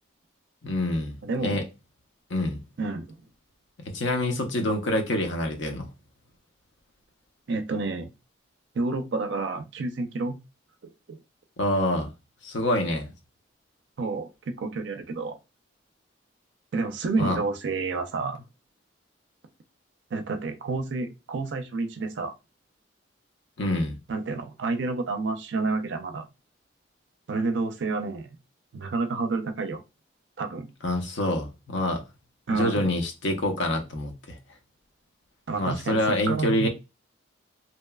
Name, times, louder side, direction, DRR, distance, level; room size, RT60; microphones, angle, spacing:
voice 1, 0.6-1.6 2.3-2.6 3.8-5.9 11.6-12.1 12.4-13.1 17.2-17.4 23.6-24.0 30.8-32.0 32.5-34.4 35.6-36.7, left 1 dB, 70° left, 0.6 m, -26 dB
voice 2, 1.2-1.6 2.8-3.2 7.5-8.1 8.7-10.4 11.1-11.2 14.0-15.4 16.7-18.4 20.1-22.3 24.1-26.3 27.3-28.3 28.7-29.8 30.4-30.7 32.5-32.9 35.5-36.0 36.3-36.7, right 3 dB, 65° right, 0.4 m, -29 dB
2.8 x 2.0 x 2.2 m
head